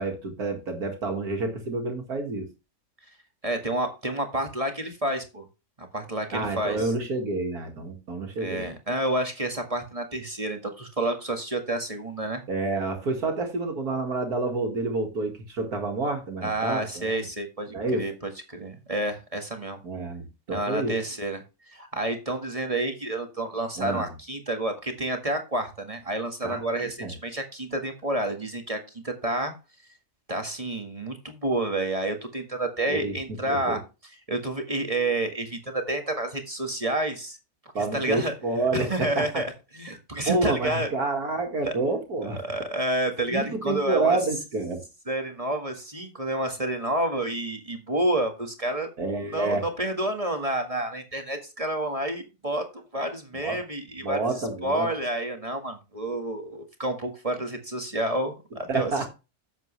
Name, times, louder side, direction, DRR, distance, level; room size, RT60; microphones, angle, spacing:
voice 1, 0.0-2.5 6.3-8.7 12.5-17.3 17.7-18.0 19.8-21.0 23.8-24.1 26.4-26.6 27.0-27.1 32.9-33.1 33.5-33.8 37.7-39.3 40.3-42.4 43.3-44.8 49.0-49.7 53.3-53.6 54.0-54.9 58.7-59.1, right 3 dB, 75° right, 4 dB, 2.4 m, -28 dB
voice 2, 3.4-5.4 5.8-6.9 8.4-12.4 16.4-19.8 20.5-29.5 30.3-33.8 34.3-37.4 37.7-38.3 38.7-40.9 41.6-41.7 42.2-44.2 45.1-48.9 49.3-54.2 54.6-58.9, right 1 dB, 25° right, 5 dB, 1.7 m, -29 dB
10.5 x 8.2 x 3.2 m, 0.28 s
omnidirectional pair, 1.6 m